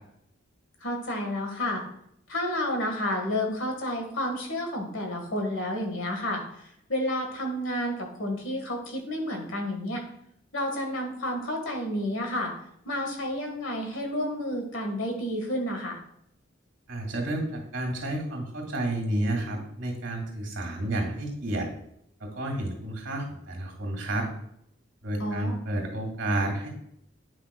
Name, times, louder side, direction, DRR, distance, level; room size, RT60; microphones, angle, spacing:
voice 1, 0.8-1.8 2.3-10.0 10.5-12.5 12.8-16.0 25.2-25.6, left 1 dB, 75° left, 3 dB, 1.5 m, -30 dB
voice 2, 16.9-21.7 22.2-24.3 25.0-26.7, right 1 dB, 65° right, 1 dB, 2.1 m, -30 dB
9.0 x 5.8 x 2.2 m, 0.74 s
head